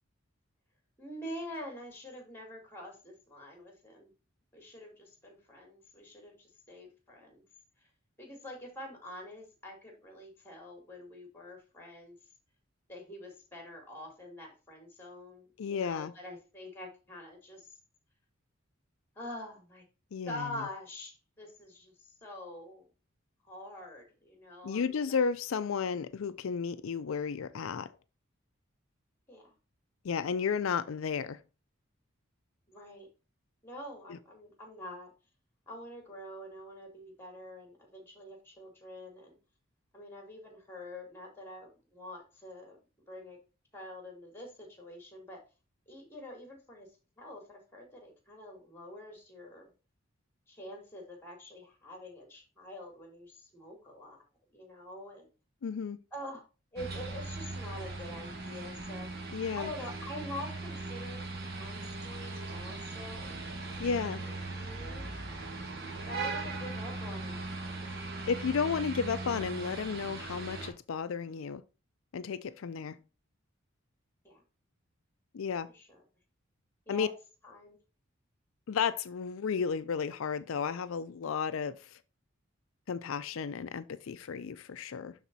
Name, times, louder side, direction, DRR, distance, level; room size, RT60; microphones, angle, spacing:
voice 1, 1.0-4.1 4.5-7.4 7.8-7.9 8.2-12.2 12.9-17.8 19.2-19.8 20.2-22.8 23.4-25.2 29.3-29.6 32.7-33.1 33.6-35.1 35.7-39.4 39.9-42.8 43.1-43.4 43.7-45.4 45.9-46.9 47.2-49.7 50.5-54.2 54.5-55.3 56.1-56.4 56.7-59.2 59.5-61.2 61.5-63.4 64.1-65.1 66.1-68.0 74.2-74.4 75.7-76.0 76.9-77.1 77.4-77.8, left 1 dB, 10° left, 2.8 m, -46 dB
voice 2, 15.6-16.1 20.1-20.5 24.6-27.9 30.0-31.4 55.6-56.0 59.3-59.7 63.8-64.2 68.3-71.6 72.1-73.0 75.3-75.7 76.9-77.1 78.7-82.0 82.9-85.1, left 6 dB, 80° left, 0.4 m, -33 dB
sound 1, 56.8-70.7, right 3 dB, 50° right, 1.5 m, -39 dB
12.0 x 4.1 x 2.7 m
head